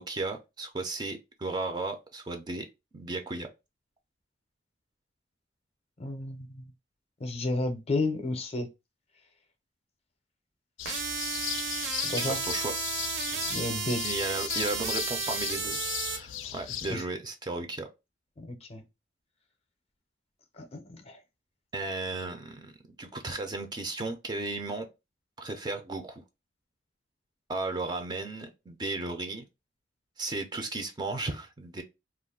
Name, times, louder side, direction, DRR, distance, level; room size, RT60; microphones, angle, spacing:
voice 1, 0.0-2.7 2.9-3.5 12.2-12.7 14.0-15.8 16.0-17.9 21.7-24.9 25.4-26.2 27.5-29.4 30.2-31.8, right 2 dB, 25° right, 0.4 m, -35 dB
voice 2, 6.0-6.6 7.2-8.7 12.0-12.4 13.5-14.0 16.4-16.5 16.9-17.0 18.4-18.8 20.6-21.2, left 2 dB, 35° left, 0.5 m, -32 dB
sound 1, 10.8-17.0, left 12 dB, 85° left, 0.3 m, -37 dB
hip hop lead, 10.9-16.2, right 5 dB, 65° right, 0.6 m, -33 dB
2.3 x 2.1 x 3.5 m
head